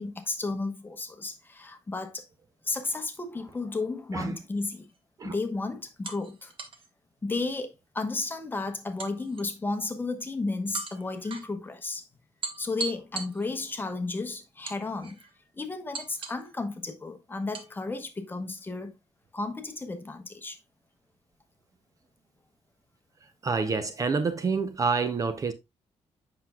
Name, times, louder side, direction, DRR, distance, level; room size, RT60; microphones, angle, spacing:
voice 1, 0.0-2.3 2.6-4.9 5.2-6.5 7.2-12.0 12.6-15.2 15.5-18.9 19.3-20.6, left 3 dB, 20° left, 1.0 m, -33 dB
sound 1, 4.8-5.0 6.0-6.9 9.0-9.8 10.7-11.5 12.4-13.8 14.7-15.3 15.9-16.5 17.5-17.7, right 4 dB, 50° right, 1.2 m, -39 dB
voice 2, 23.4-25.5, right 4 dB, 30° right, 0.6 m, -27 dB
7.7 x 5.9 x 2.3 m
wide cardioid pair, 150°, 11 cm